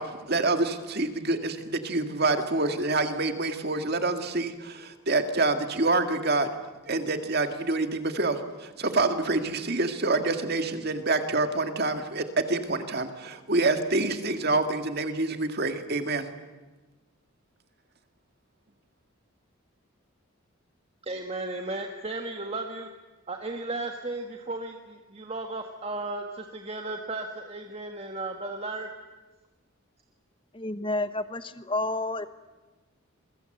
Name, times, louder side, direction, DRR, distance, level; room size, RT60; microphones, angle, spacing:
voice 1, 0.0-6.5 6.9-16.3, right 3 dB, 50° right, 7 dB, 2.1 m, -27 dB
voice 2, 21.0-22.9 23.3-28.9, right 2 dB, 30° right, 4 dB, 1.5 m, -35 dB
voice 3, 30.5-32.3, left 2 dB, 25° left, 12 dB, 1.1 m, -30 dB
27.5 x 22.5 x 7.9 m, 1.2 s
head